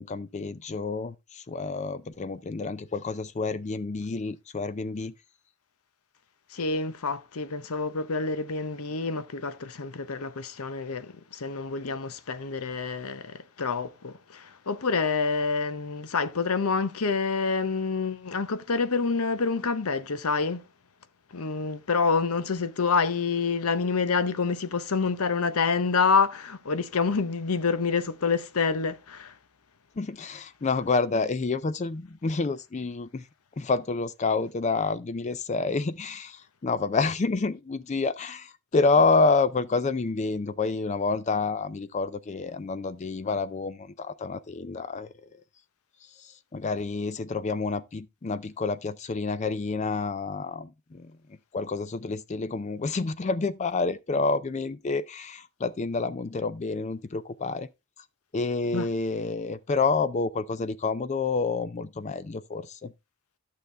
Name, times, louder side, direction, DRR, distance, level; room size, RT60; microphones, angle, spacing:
voice 1, 0.0-5.1 30.0-33.3 33.6-45.1 46.0-51.2 51.5-57.7 58.3-62.9, left 4 dB, 30° left, 0.4 m, -28 dB
voice 2, 6.5-20.6 21.3-29.3 58.7-58.9, left 4 dB, 75° left, 0.8 m, -27 dB
11.5 x 6.6 x 3.3 m
head